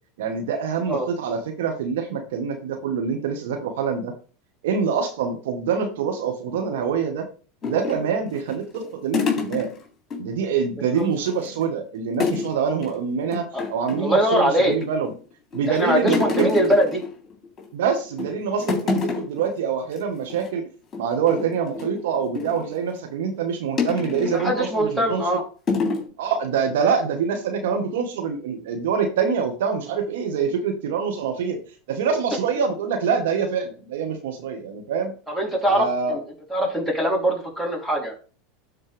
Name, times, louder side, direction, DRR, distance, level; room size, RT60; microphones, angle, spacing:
voice 1, 0.2-4.1 4.6-7.3 7.6-9.7 10.2-15.1 15.5-16.5 17.7-20.6 21.0-25.4 26.2-31.6 31.9-35.1 35.7-36.2, right 6 dB, 70° right, 4 dB, 1.5 m, -25 dB
sound 1, 7.6-10.2 10.5-10.7 11.0-11.6 12.2-12.5 12.8-13.0 13.3-14.1 14.7-15.2 15.5-17.7 18.0-18.3 18.6-19.5 19.8-20.0 20.3-20.5 20.9-22.7 23.8-24.5 25.0-25.2 25.7-26.1, left 5 dB, 30° left, 3.4 m, -28 dB
voice 2, 14.0-14.7 15.7-17.0 24.3-25.4 35.3-36.2 36.5-38.1, equal, 5° right, -1 dB, 3.4 m, -22 dB
12.5 x 4.3 x 3.5 m, 0.38 s
hypercardioid pair, 90°, 0 cm